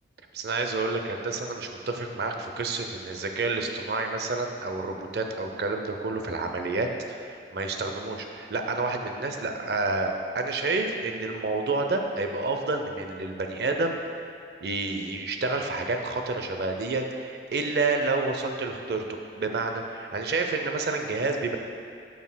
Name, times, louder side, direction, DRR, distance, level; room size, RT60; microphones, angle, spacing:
voice 1, 0.3-14.0 14.6-21.6, right 3 dB, 65° right, 4 dB, 0.5 m, -29 dB
9.2 x 6.3 x 2.2 m, 2.4 s
head